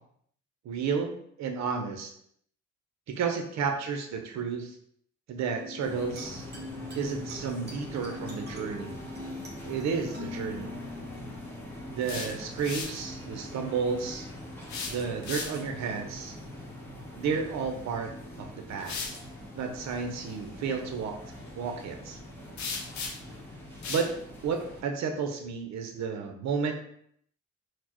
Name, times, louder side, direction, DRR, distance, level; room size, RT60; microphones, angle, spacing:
voice 1, 0.6-2.1 3.1-4.8 5.3-6.5 6.9-9.0 9.7-10.8 11.9-14.3 14.9-16.4 17.2-18.1 18.4-19.0 19.5-21.2 21.5-22.2 23.9-24.1 24.4-26.7, right 5 dB, 65° right, 4 dB, 0.7 m, -32 dB
sound 1, 5.6-12.5, left 3 dB, 35° right, 1.0 m, -43 dB
sound 2, 5.8-24.8, equal, 5° left, 1.0 m, -43 dB
sound 3, 11.8-13.0 14.6-15.8 17.9-18.0 18.8-19.2 22.6-23.4 23.8-24.1, left 4 dB, 70° left, 0.8 m, -36 dB
4.2 x 2.1 x 2.9 m, 0.67 s
cardioid pair, 90°, 30 cm